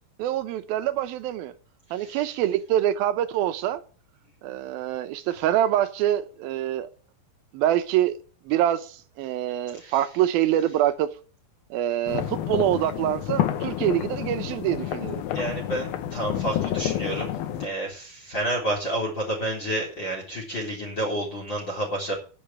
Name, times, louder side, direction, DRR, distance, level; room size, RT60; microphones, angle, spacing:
voice 1, 0.2-1.5 1.9-3.8 4.4-6.9 7.5-8.2 8.5-11.1 11.7-15.2, right 12 dB, 80° right, 2.7 m, -25 dB
voice 2, 1.9-2.3 9.8-10.0 15.3-17.3 17.6-22.1, right 1 dB, 30° left, 4.1 m, -30 dB
sound 1, 12.1-17.7, left 11 dB, 85° left, 2.9 m, -29 dB
10.5 x 6.9 x 8.7 m
omnidirectional pair, 4.3 m